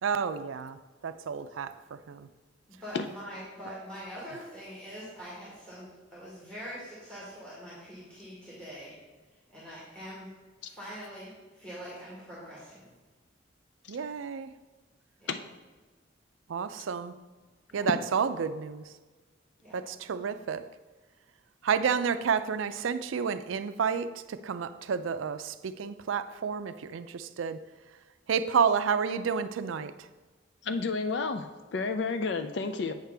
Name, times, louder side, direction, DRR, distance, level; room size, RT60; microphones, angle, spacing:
voice 1, 0.0-2.3 13.9-14.6 16.5-17.2 17.7-19.0 19.7-20.7 21.6-28.0 28.3-30.1, right 6 dB, 90° right, 12 dB, 0.4 m, -30 dB
voice 2, 2.7-9.0 9.3-10.3 10.6-12.9 15.2-15.4 17.7-17.9 19.6-19.8, equal, 5° left, -8 dB, 1.8 m, -44 dB
voice 3, 30.6-32.9, left 4 dB, 60° left, 8 dB, 0.4 m, -31 dB
7.9 x 6.5 x 3.4 m, 1.3 s
head